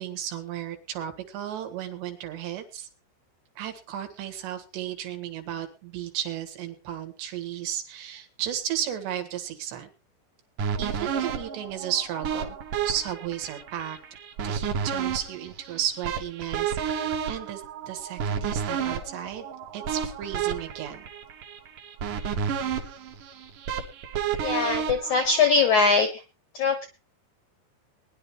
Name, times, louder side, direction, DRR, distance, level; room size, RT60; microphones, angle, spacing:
voice 1, 0.0-2.9 3.6-9.9 10.8-12.6 12.9-14.0 14.4-19.5 19.7-21.1, right 10 dB, 80° right, 7 dB, 3.8 m, -34 dB
sound 1, 10.6-25.8, right 7 dB, 60° right, 2.5 m, -31 dB
voice 2, 24.4-26.2 26.5-26.9, left 4 dB, 75° left, 7 dB, 1.7 m, -22 dB
20.5 x 11.0 x 3.1 m, 0.30 s
omnidirectional pair, 5.0 m